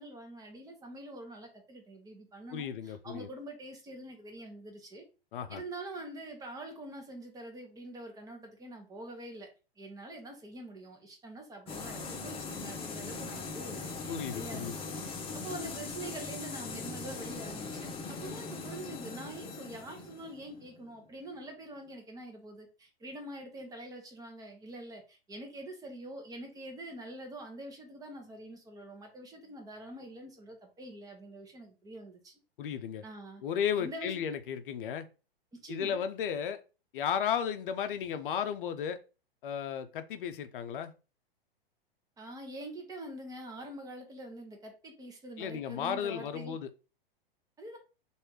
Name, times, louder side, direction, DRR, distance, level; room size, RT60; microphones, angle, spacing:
voice 1, 0.0-5.0 5.5-9.5 9.8-32.3 33.0-33.4 33.8-34.2 35.5-36.0 42.2-46.6 47.6-47.8, right 1 dB, 10° right, 1.0 m, -45 dB
voice 2, 2.5-3.3 5.3-5.6 14.1-14.8 32.6-33.0 33.4-35.1 35.7-36.6 36.9-39.0 39.4-40.9 45.4-46.7, left 8 dB, 60° left, 0.6 m, -34 dB
sound 1, 11.7-21.3, left 4 dB, 20° left, 0.7 m, -40 dB
3.2 x 2.7 x 4.5 m
hypercardioid pair, 110°, 30 cm